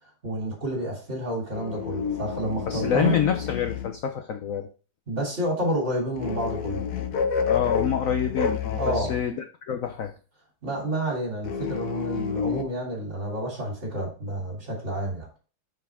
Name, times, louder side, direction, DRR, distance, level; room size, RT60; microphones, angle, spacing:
voice 1, 0.2-3.1 5.1-6.8 8.8-9.1 10.6-15.3, right 1 dB, 35° right, -2 dB, 3.4 m, -29 dB
sound 1, 1.5-4.0 6.2-9.3 11.4-12.6, left 6 dB, 55° left, 1.3 m, -29 dB
voice 2, 2.7-4.7 7.5-10.1, left 8 dB, 75° left, 6 dB, 0.7 m, -27 dB
7.1 x 6.7 x 3.6 m, 0.38 s
omnidirectional pair, 2.2 m